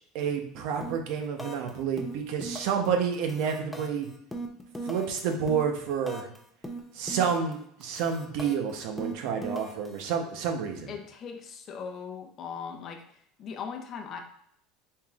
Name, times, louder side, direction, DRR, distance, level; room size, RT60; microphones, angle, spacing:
voice 1, 0.1-4.1 4.8-6.3 6.9-10.9, right 6 dB, 70° right, 4 dB, 0.8 m, -29 dB
sound 1, 0.8-1.1 1.4-1.7 2.0-2.9 3.1-6.4 6.6-7.5 7.8-10.0, right 1 dB, 5° left, 0.6 m, -39 dB
voice 2, 10.9-13.0 13.4-14.2, left 6 dB, 40° left, 4 dB, 0.7 m, -39 dB
4.3 x 3.7 x 2.4 m, 0.69 s
supercardioid pair, 125°, 0 cm